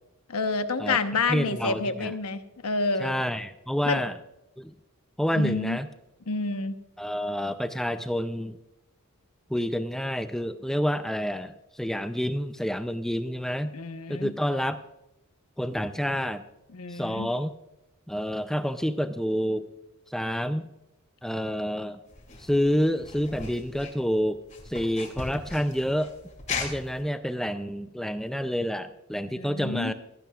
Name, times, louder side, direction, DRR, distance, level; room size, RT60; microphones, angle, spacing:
voice 1, 0.3-3.1 3.8-4.0 5.3-5.8 6.3-6.8 13.7-14.3 16.7-17.3 29.4-29.9, left 3 dB, 90° left, 9 dB, 1.0 m, -29 dB
voice 2, 1.3-2.1 3.0-4.1 4.6-4.7 5.2-5.9 7.0-8.6 9.5-13.7 14.1-14.8 15.6-16.4 16.9-17.5 18.1-19.7 20.1-20.7 21.2-22.0 22.4-24.4 24.7-26.1 26.6-29.9, equal, ahead, 9 dB, 0.4 m, -28 dB
sound 1, 22.1-27.0, left 4 dB, 35° left, 2.7 m, -38 dB
16.5 x 14.0 x 2.4 m, 0.89 s
head